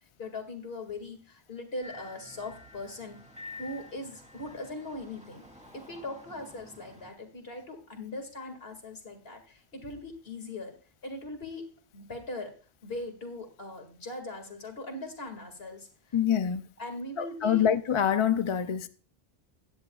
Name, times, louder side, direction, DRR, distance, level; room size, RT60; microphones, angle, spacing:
voice 1, 0.2-3.2 3.6-5.4 5.7-10.7 11.0-12.6 12.8-15.9 16.8-17.7, left 2 dB, 70° left, 2.4 m, -40 dB
sound 1, 1.8-7.1, left 3 dB, 5° right, 1.7 m, -49 dB
voice 2, 16.1-16.7 17.2-18.9, left 8 dB, 40° left, 0.5 m, -26 dB
15.5 x 10.5 x 2.3 m
omnidirectional pair, 1.0 m